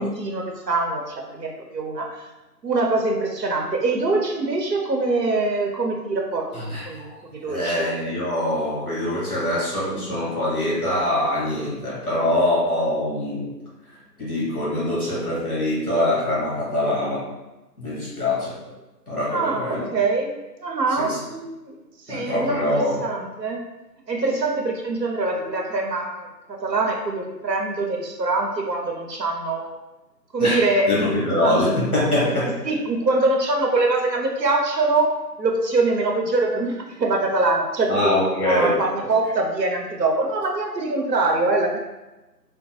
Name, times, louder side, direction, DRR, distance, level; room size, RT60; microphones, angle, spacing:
voice 1, 0.0-2.3 2.6-7.9 19.3-20.3 20.6-21.8 22.1-23.6 24.1-29.7 30.3-31.6 32.6-38.1 38.4-41.8, right 2 dB, 80° right, 1 dB, 0.7 m, -24 dB
voice 2, 6.5-7.1 7.5-13.5 14.2-17.3 17.8-18.7 19.1-19.9 21.0-21.2 22.1-23.0 30.4-32.5 37.9-38.8, left 1 dB, 60° left, -7 dB, 1.3 m, -24 dB
3.3 x 2.1 x 2.8 m, 1.0 s
figure-of-eight pair, 170°, 50 cm